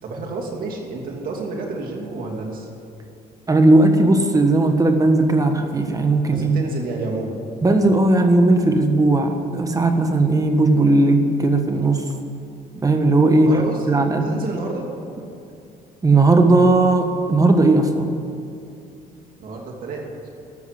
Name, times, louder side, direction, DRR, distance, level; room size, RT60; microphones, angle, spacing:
voice 1, 0.0-2.7 6.3-7.4 13.4-14.9 19.4-20.3, right 3 dB, 55° right, -1 dB, 2.8 m, -30 dB
voice 2, 3.5-6.6 7.6-12.0 12.8-13.6 13.9-14.3 16.0-18.2, right 2 dB, 20° right, 6 dB, 1.4 m, -17 dB
13.5 x 7.1 x 10.0 m, 2.7 s
cardioid pair, 110°, 17 cm